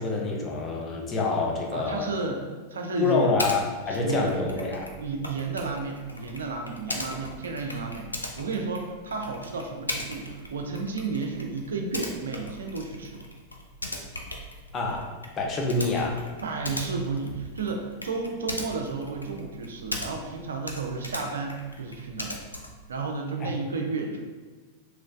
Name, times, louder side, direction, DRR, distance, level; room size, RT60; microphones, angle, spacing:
voice 1, 0.0-2.1 3.0-4.9 6.9-7.2 14.7-15.1 15.4-16.2 23.4-23.5, left 3 dB, 25° left, -1 dB, 0.6 m, -27 dB
voice 2, 1.7-2.4 2.7-3.3 3.9-4.3 5.0-13.2 16.4-22.4 22.9-24.2, right 4 dB, 65° right, 3 dB, 0.4 m, -32 dB
Typing, 3.4-3.6 3.9-20.4 20.6-22.9, left 1 dB, 85° left, 0.3 m, -38 dB
3.1 x 3.0 x 2.5 m, 1.3 s
figure-of-eight pair, 90°, 0 cm